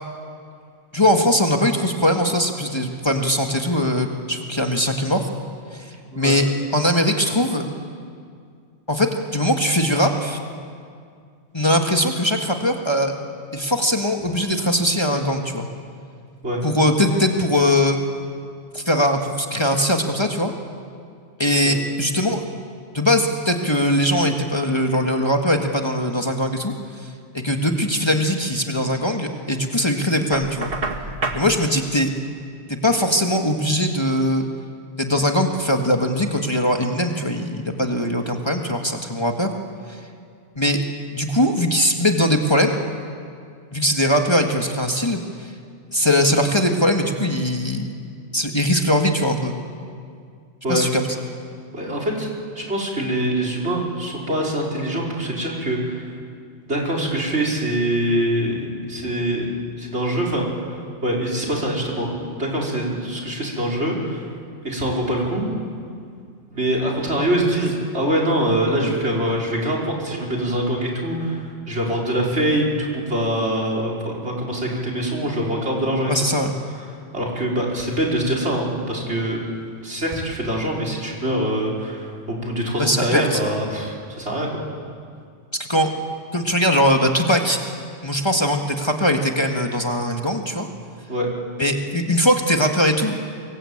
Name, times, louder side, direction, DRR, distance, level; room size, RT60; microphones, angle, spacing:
voice 1, 0.9-5.3 5.7-7.7 8.9-10.4 11.5-13.2 13.5-15.7 16.6-18.0 18.7-20.5 21.4-22.4 22.9-26.7 27.0-27.1 27.3-30.7 31.3-32.1 32.7-34.5 35.0-39.5 39.9-40.0 40.6-40.8 41.1-42.8 43.7-45.5 45.9-47.9 48.3-49.6 50.7-51.0 76.1-76.5 82.8-83.4 85.6-85.9 86.3-87.6 88.0-90.7 91.6-93.2, left 1 dB, 25° left, 3 dB, 1.8 m, -20 dB
Knock, 30.3-31.5, right 3 dB, 55° right, 2.0 m, -27 dB
voice 2, 51.7-52.3 52.6-56.1 56.7-59.5 59.8-60.5 61.0-64.3 64.6-65.5 66.5-76.1 76.7-79.4 79.8-84.6 91.1-91.3, right 1 dB, 70° right, 0 dB, 5.3 m, -24 dB
25.5 x 22.5 x 8.7 m, 2.2 s
omnidirectional pair, 1.2 m